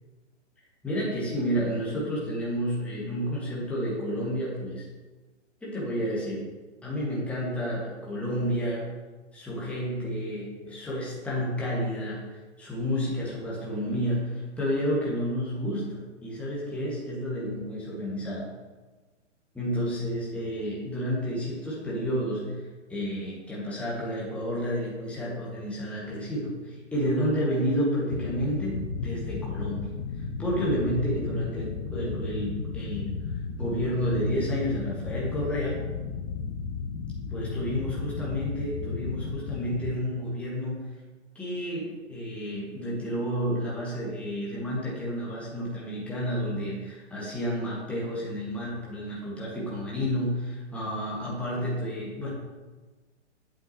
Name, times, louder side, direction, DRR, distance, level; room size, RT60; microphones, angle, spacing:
voice 1, 0.8-4.9 5.6-6.4 6.8-8.9 9.3-18.5 19.5-29.9 30.2-33.1 33.6-35.8 37.3-40.9 41.3-52.3, equal, 5° left, -6 dB, 1.5 m, -30 dB
sound 1, 28.1-39.9, left 5 dB, 25° left, 0.7 m, -34 dB
8.1 x 7.9 x 2.9 m, 1.3 s
figure-of-eight pair, 130°, 36 cm